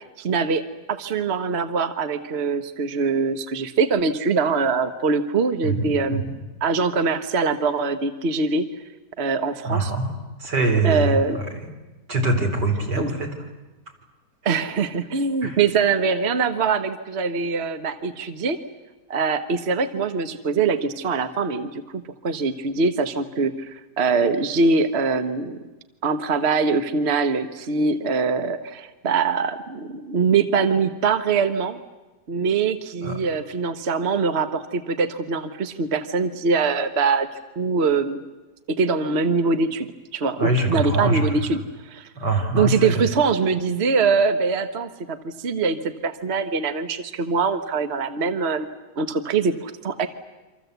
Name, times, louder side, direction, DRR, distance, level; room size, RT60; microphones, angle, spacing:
voice 1, 0.2-0.6 0.9-6.3 6.6-8.6 9.2-9.9 10.8-11.6 12.9-13.1 14.4-18.6 19.1-25.6 26.0-31.8 32.3-37.3 37.6-38.2 38.8-39.9 40.1-42.1 42.5-48.7 49.0-50.1, right 4 dB, 40° right, 10 dB, 1.3 m, -23 dB
voice 2, 5.6-6.3 9.6-10.1 10.4-11.2 12.1-13.3 14.5-14.6 15.4-15.6 33.0-33.1 40.4-41.4 42.2-43.1, right 2 dB, 80° right, 3 dB, 4.8 m, -23 dB
28.0 x 25.5 x 8.1 m, 1.1 s
omnidirectional pair, 1.8 m